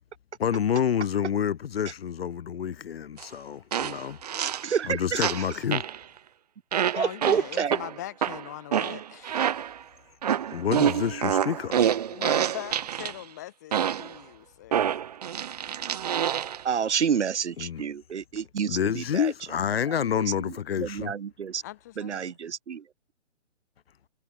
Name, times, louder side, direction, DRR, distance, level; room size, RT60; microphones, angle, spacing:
voice 1, 0.4-4.2 4.9-5.8 10.5-12.0 17.6-17.8 18.7-21.1, left 8 dB, 55° left, 0.8 m, -28 dB
sound 1, 3.2-3.3 3.7-4.7 5.2-6.0 6.7-9.8 10.2-13.1 13.7-14.2 14.7-16.6, right 9 dB, 35° right, 0.8 m, -27 dB
voice 2, 4.4-5.3 6.9-7.8 16.6-19.3 19.9-21.6 22.0-22.8, right 7 dB, 70° right, 1.3 m, -29 dB
voice 3, 6.9-9.7 12.1-15.0 21.6-22.3, left 15 dB, 15° left, 0.7 m, -41 dB
hypercardioid pair, 160°, 35 cm